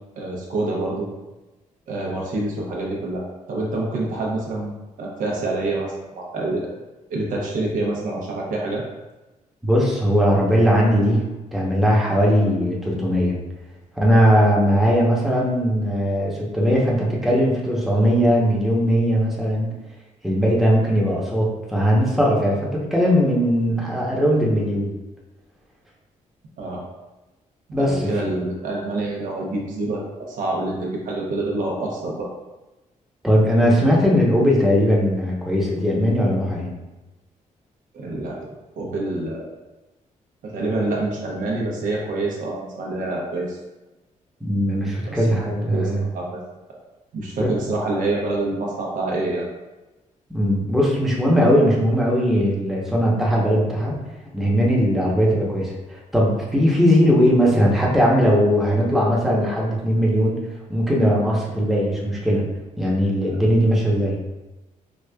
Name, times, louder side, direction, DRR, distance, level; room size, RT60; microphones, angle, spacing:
voice 1, 0.2-1.1 1.9-4.7 5.0-6.7 7.1-8.8 26.6-26.8 27.8-32.3 37.9-38.5 38.8-39.5 40.4-43.6 45.1-45.4 45.7-46.4 47.1-49.5 63.2-63.4, right 2 dB, 80° right, -2 dB, 0.8 m, -26 dB
voice 2, 9.6-13.4 13.9-19.8 20.2-24.9 27.7-28.1 33.2-36.7 44.4-46.0 47.4-47.5 50.3-53.9 54.3-60.4 60.7-62.4 62.8-64.2, equal, ahead, -4 dB, 0.8 m, -19 dB
4.9 x 2.4 x 2.2 m, 1.1 s
cardioid pair, 120°, 13 cm